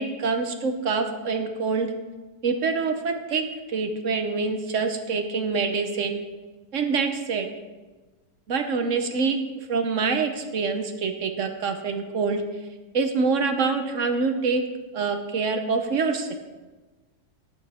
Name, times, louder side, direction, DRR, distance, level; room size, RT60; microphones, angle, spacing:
voice 1, 0.0-1.9 2.4-6.2 6.7-7.5 8.5-12.4 12.9-14.6 14.9-16.3, right 4 dB, 55° right, 6 dB, 0.9 m, -25 dB
11.5 x 8.6 x 3.6 m, 1.2 s
omnidirectional pair, 1.9 m